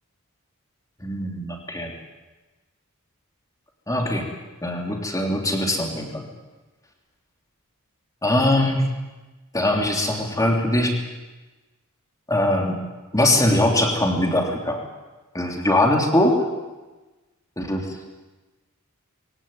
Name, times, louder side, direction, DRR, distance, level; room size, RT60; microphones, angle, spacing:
voice 1, 1.0-1.9 3.9-4.3 4.6-6.3 8.2-8.9 9.5-11.0 12.3-12.8 13.1-14.8 15.3-16.4 17.6-17.9, left 1 dB, 15° left, 1 dB, 3.4 m, -21 dB
22.5 x 17.5 x 9.1 m, 1.2 s
head